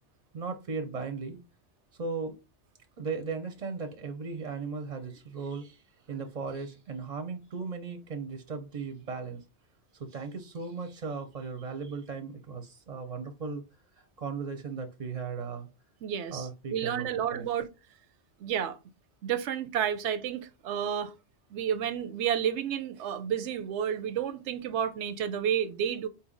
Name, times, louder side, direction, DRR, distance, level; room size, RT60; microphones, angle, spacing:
voice 1, 0.3-1.4 2.0-2.4 3.0-5.8 6.1-9.4 10.0-13.6 14.2-15.7 16.3-17.5, right 4 dB, 45° right, 0.6 m, -37 dB
voice 2, 16.0-17.7 18.4-18.8 19.2-21.1 21.5-26.1, right 9 dB, 85° right, 0.9 m, -31 dB
4.3 x 2.9 x 3.7 m
omnidirectional pair, 1.2 m